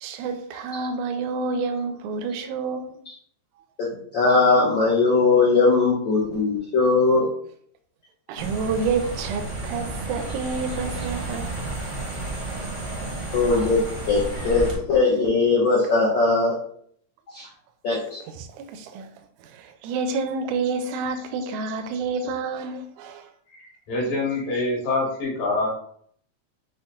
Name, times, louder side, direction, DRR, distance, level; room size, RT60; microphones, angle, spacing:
voice 1, 0.0-3.0 8.3-11.6 18.2-19.1 19.4-23.3, right 4 dB, 85° right, 1.9 m, -29 dB
voice 2, 3.8-7.3 13.3-16.6 17.3-17.5 17.8-18.2, left 3 dB, 90° left, 1.0 m, -20 dB
sound 1, 8.4-14.8, right 2 dB, 65° right, 0.7 m, -32 dB
voice 3, 23.6-25.7, left 2 dB, 70° left, 2.6 m, -25 dB
5.7 x 2.2 x 3.7 m
omnidirectional pair, 3.3 m